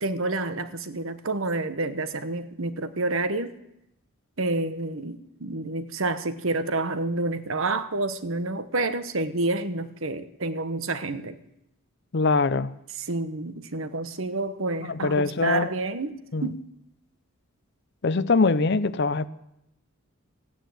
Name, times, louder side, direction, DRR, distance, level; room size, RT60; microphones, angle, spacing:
voice 1, 0.0-3.5 4.4-11.4 13.1-16.6, right 2 dB, 65° right, 11 dB, 1.1 m, -29 dB
voice 2, 12.1-12.7 14.9-15.7 16.3-16.5 18.0-19.3, left 4 dB, 50° left, 16 dB, 0.6 m, -23 dB
15.5 x 9.3 x 9.2 m, 0.83 s
head